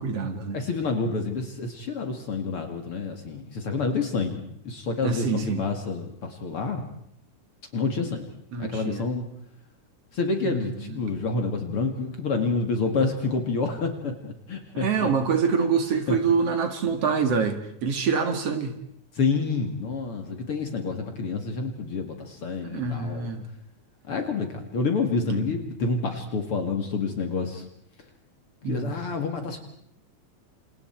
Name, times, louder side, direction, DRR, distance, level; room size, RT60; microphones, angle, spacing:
voice 1, 0.0-0.6 5.0-5.6 8.5-9.0 10.4-10.9 14.7-18.7 22.6-23.4 25.3-25.5 28.6-28.9, right 5 dB, 55° right, 7 dB, 3.1 m, -26 dB
voice 2, 0.5-6.8 7.7-8.3 8.6-9.3 10.1-15.1 16.1-16.2 19.1-23.3 24.1-27.6 28.7-29.6, left 4 dB, 50° left, 5 dB, 2.9 m, -28 dB
29.5 x 28.0 x 4.6 m, 0.70 s
omnidirectional pair, 3.4 m